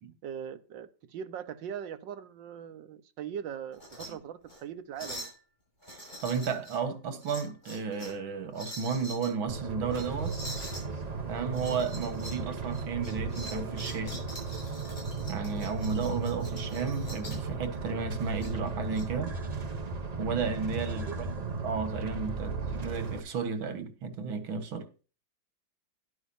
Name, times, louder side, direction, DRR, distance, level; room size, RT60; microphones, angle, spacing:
voice 1, 0.2-5.3 20.9-21.2, right 8 dB, 70° right, 1.6 m, -40 dB
sound 1, 3.7-4.1 4.4-4.6 5.0-5.4 5.8-6.8 7.2-8.2 8.5-9.3 9.9-10.9 11.5-12.4 12.7-17.5 18.4-19.0, equal, 20° left, 6.9 m, -44 dB
voice 2, 5.9-10.4 11.3-14.3 15.3-19.3 20.2-21.4 21.6-24.9, right 5 dB, 85° right, 2.2 m, -33 dB
sound 2, 9.5-23.2, right 4 dB, 40° right, 0.6 m, -36 dB
Crow, 10.9-17.3, left 4 dB, 70° left, 3.6 m, -46 dB
12.5 x 11.0 x 2.7 m
omnidirectional pair, 2.1 m